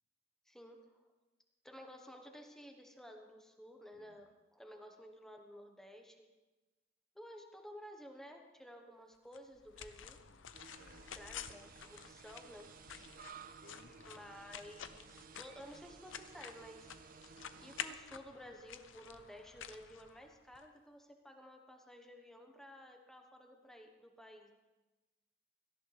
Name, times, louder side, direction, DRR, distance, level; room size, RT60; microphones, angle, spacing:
voice 1, 0.5-0.8 1.6-6.3 7.1-10.2 11.2-13.1 14.0-16.9 17.6-24.5, equal, ahead, 3 dB, 1.3 m, -54 dB
sound 1, 9.3-20.6, left 8 dB, 85° left, 0.7 m, -50 dB
voice 2, 10.1-10.5 10.8-11.1 13.0-13.3 13.6-14.3, left 2 dB, 65° left, 8 dB, 1.0 m, -63 dB
sound 2, 10.5-17.9, right 6 dB, 45° right, 0.5 m, -57 dB
18.0 x 14.0 x 3.4 m, 1.2 s
head